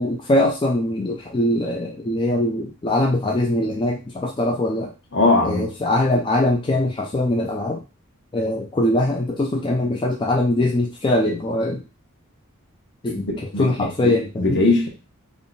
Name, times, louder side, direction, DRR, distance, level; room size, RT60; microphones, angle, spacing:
voice 1, 0.0-4.9 5.4-7.8 8.3-11.8 13.0-13.3 13.6-14.6, left 1 dB, 20° left, 0 dB, 0.4 m, -22 dB
voice 2, 5.1-5.7 13.1-14.9, left 2 dB, 55° left, 1 dB, 1.0 m, -21 dB
3.5 x 2.2 x 3.9 m, 0.31 s
head